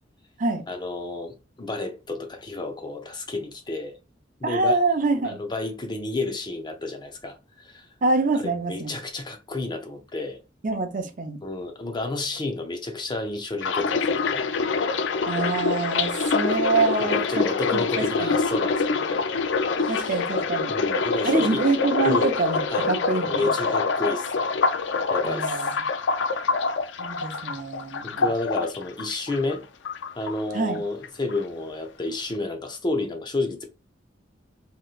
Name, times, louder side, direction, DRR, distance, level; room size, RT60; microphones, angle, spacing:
voice 1, 0.7-4.0 4.4-4.8 5.2-7.9 8.3-10.4 11.4-14.4 17.0-19.2 19.8-20.2 20.7-21.7 22.0-22.3 22.7-22.9 23.3-24.5 25.1-25.7 26.3-26.5 28.0-29.6 30.2-33.6, left 2 dB, 25° left, 0.5 m, -31 dB
voice 2, 4.4-5.4 8.0-8.9 10.6-11.4 15.3-18.3 19.9-20.7 21.2-23.5 25.2-25.7 27.0-28.3 30.5-30.8, right 3 dB, 45° right, 0.6 m, -25 dB
sound 1, 13.6-29.6 29.8-30.8 31.0-31.4, left 4 dB, 75° left, 0.4 m, -25 dB
3.2 x 2.8 x 2.3 m
head